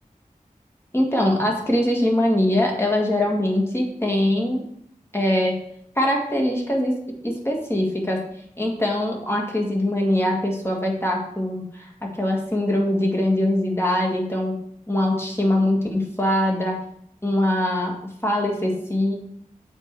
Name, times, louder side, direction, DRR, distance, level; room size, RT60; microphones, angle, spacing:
voice 1, 0.9-4.6 5.1-5.6 6.0-6.9 7.2-8.2 8.6-14.5 14.9-16.8 17.2-18.0 18.2-19.1, left 1 dB, 15° left, -1 dB, 2.0 m, -22 dB
7.7 x 4.9 x 4.8 m, 0.69 s
wide cardioid pair, 45°, 15 cm